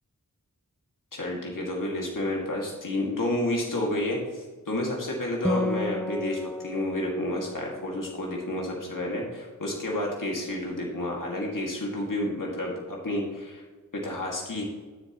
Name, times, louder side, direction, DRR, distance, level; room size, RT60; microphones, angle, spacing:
voice 1, 1.1-13.6 13.9-14.6, left 1 dB, 70° left, -2 dB, 2.2 m, -30 dB
Acoustic guitar, 5.4-9.2, left 1 dB, 5° left, 0.3 m, -33 dB
12.0 x 7.1 x 3.1 m, 1.3 s
wide cardioid pair, 70°, 33 cm